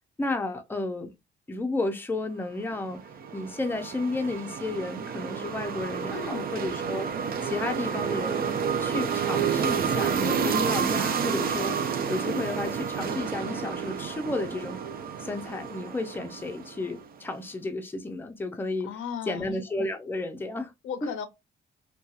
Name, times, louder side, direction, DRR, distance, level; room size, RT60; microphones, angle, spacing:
voice 1, 0.2-1.1 1.5-7.1 7.4-8.4 8.8-11.8 12.1-14.8 15.2-18.9 19.3-20.7 21.0-21.1, left 2 dB, 10° left, 0.5 m, -32 dB
sound 1, 2.7-17.1, right 6 dB, 50° right, 0.5 m, -30 dB
voice 2, 6.1-6.5 18.8-19.5 20.8-21.3, left 8 dB, 85° left, 0.6 m, -35 dB
2.8 x 2.3 x 2.3 m
cardioid pair, 90°, 20 cm